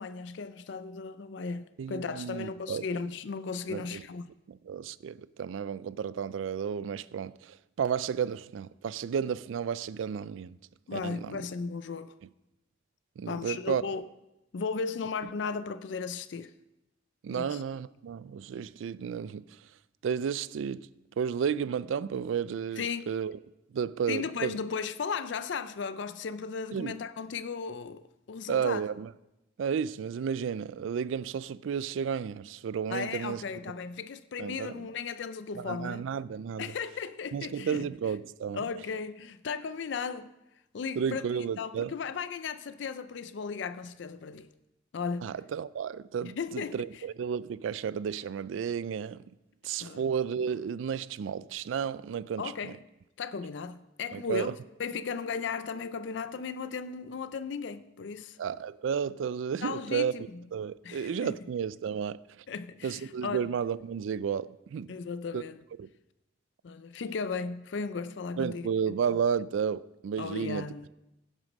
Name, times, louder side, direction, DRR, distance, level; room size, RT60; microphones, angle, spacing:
voice 1, 0.0-4.3 10.9-12.1 13.3-14.0 14.5-16.5 17.3-17.6 22.8-23.0 24.1-28.8 32.9-36.1 36.6-37.9 38.5-40.3 40.7-44.5 44.9-45.3 46.2-47.0 49.8-50.1 52.4-52.8 53.2-58.4 59.6-60.4 60.8-61.4 62.5-63.5 64.9-65.6 66.6-68.7 70.2-70.9, left 5 dB, 70° left, 0.4 m, -36 dB
voice 2, 1.8-2.9 3.7-4.0 4.5-10.6 10.9-11.4 13.2-13.8 17.2-19.5 20.0-20.9 21.2-23.4 23.7-24.6 26.7-27.0 28.5-29.1 29.6-33.4 34.4-34.7 35.6-36.6 37.3-38.6 41.0-41.9 45.2-49.2 49.6-52.7 54.1-54.5 58.4-60.1 60.5-62.2 62.8-64.9 65.3-65.4 65.8-65.9 68.4-70.7, right 7 dB, 85° right, 0.3 m, -32 dB
16.0 x 6.2 x 5.2 m
head